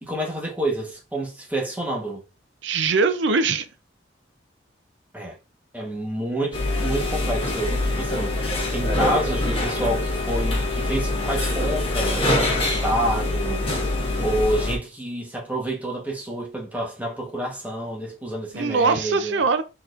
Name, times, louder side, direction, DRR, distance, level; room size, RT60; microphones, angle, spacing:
voice 1, 0.0-2.2 5.1-5.4 5.7-13.7 14.2-19.4, right 1 dB, 10° right, 1.2 m, -28 dB
voice 2, 2.6-3.7 18.5-19.6, right 4 dB, 70° right, 0.6 m, -21 dB
sound 1, 6.5-14.8, left 1 dB, 30° left, 1.5 m, -24 dB
4.5 x 4.1 x 2.5 m
head